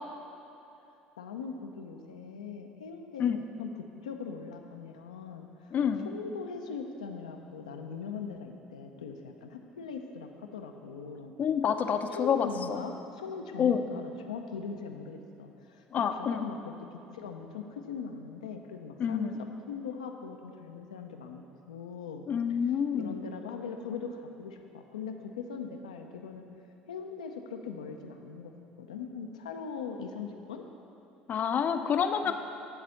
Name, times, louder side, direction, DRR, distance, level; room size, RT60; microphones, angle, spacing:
voice 1, 1.2-5.5 6.0-11.3 12.1-15.8 16.1-19.3 19.7-22.3 22.9-26.4 26.9-28.5 28.8-30.6 32.2-32.3, left 5 dB, 90° left, 4 dB, 0.6 m, -41 dB
voice 2, 5.7-6.1 11.4-12.8 13.6-13.8 15.9-16.5 19.0-19.4 22.3-23.2 31.3-32.3, left 7 dB, 50° left, 8 dB, 0.6 m, -28 dB
10.0 x 4.1 x 7.0 m, 2.8 s
hypercardioid pair, 65°, 4 cm